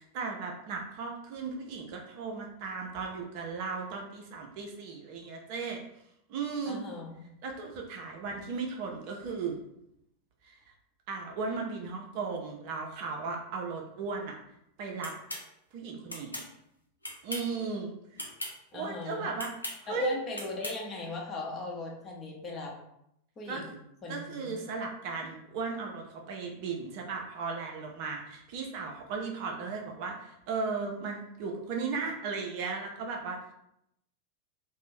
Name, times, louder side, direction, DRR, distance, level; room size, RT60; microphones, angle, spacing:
voice 1, 0.0-5.8 6.3-6.8 7.4-9.6 10.4-10.6 11.1-14.3 14.8-15.1 15.7-16.4 17.2-17.9 18.7-19.5 19.8-20.2 23.5-23.6 24.1-33.4, right 4 dB, 45° right, 1 dB, 0.5 m, -36 dB
voice 2, 6.7-7.2 18.7-19.3 19.9-22.8 23.4-23.7 24.0-24.5, left 3 dB, 25° left, -1 dB, 0.7 m, -38 dB
sound 1, 15.0-15.4 16.1-16.5 17.0-17.5 18.1-18.5 19.4-19.8 20.3-20.8, left 1 dB, 85° left, 0.5 m, -38 dB
2.5 x 2.0 x 3.1 m, 0.77 s
figure-of-eight pair, 90°, 0 cm